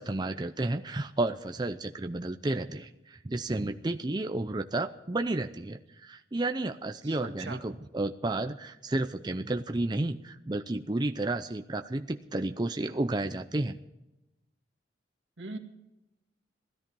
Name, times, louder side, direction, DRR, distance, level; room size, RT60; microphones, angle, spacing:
voice 1, 0.0-13.8, right 2 dB, 25° right, 6 dB, 0.5 m, -32 dB
voice 2, 7.0-7.6 15.4-15.6, right 3 dB, 85° right, 4 dB, 2.0 m, -40 dB
17.0 x 13.0 x 5.4 m, 0.94 s
head